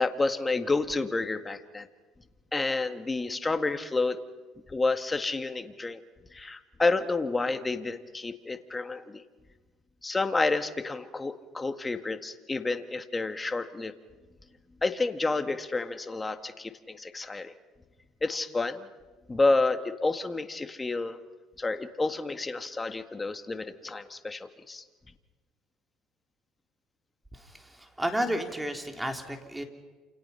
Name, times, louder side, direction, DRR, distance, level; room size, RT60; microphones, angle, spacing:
voice 1, 0.0-1.9 2.5-4.2 4.7-6.0 6.3-9.2 10.0-13.9 14.8-17.5 18.2-18.9 19.3-21.2 21.6-24.8, left 3 dB, 20° left, 8 dB, 1.8 m, -29 dB
voice 2, 27.3-29.6, equal, 5° right, 4 dB, 3.5 m, -32 dB
29.0 x 28.0 x 5.8 m, 1.3 s
supercardioid pair, 90°, 0 cm